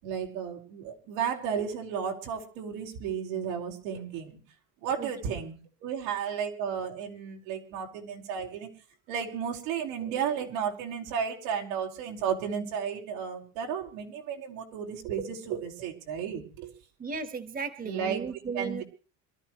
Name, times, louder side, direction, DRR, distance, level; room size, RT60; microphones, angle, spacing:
voice 1, 0.0-4.4 4.8-5.6 5.8-8.7 9.1-16.7 17.8-18.8, right 7 dB, 90° right, -1 dB, 4.9 m, -33 dB
voice 2, 17.0-18.8, right 5 dB, 20° right, 10 dB, 1.5 m, -35 dB
27.0 x 13.5 x 3.1 m, 0.37 s
cardioid pair, 135°, 39 cm